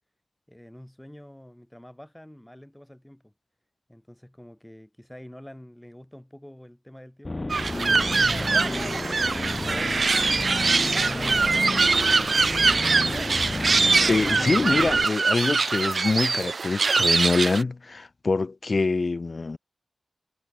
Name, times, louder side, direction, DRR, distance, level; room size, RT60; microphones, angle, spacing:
voice 1, 0.5-3.3 3.9-8.6 9.2-10.4 11.2-12.2, left 1 dB, 5° left, 4.2 m, -47 dB
sound 1, 7.2-15.0, left 2 dB, 25° left, 1.3 m, -31 dB
sound 2, 7.5-17.6, right 4 dB, 50° right, 0.6 m, -23 dB
voice 2, 13.8-19.6, left 3 dB, 40° left, 0.7 m, -25 dB
wide cardioid pair, 130°, 0 cm